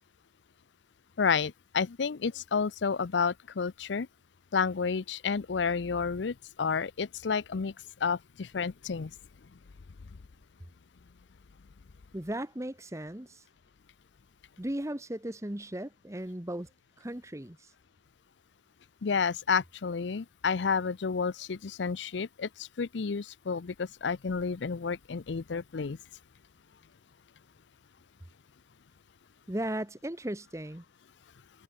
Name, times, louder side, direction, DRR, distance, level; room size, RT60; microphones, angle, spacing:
voice 1, 1.2-4.1 4.5-7.7 8.0-9.1 19.0-26.0, left 5 dB, 75° left, 0.6 m, -30 dB
voice 2, 12.1-13.5 14.6-16.7 17.0-17.7 29.5-30.8, right 1 dB, 15° right, 1.1 m, -36 dB
head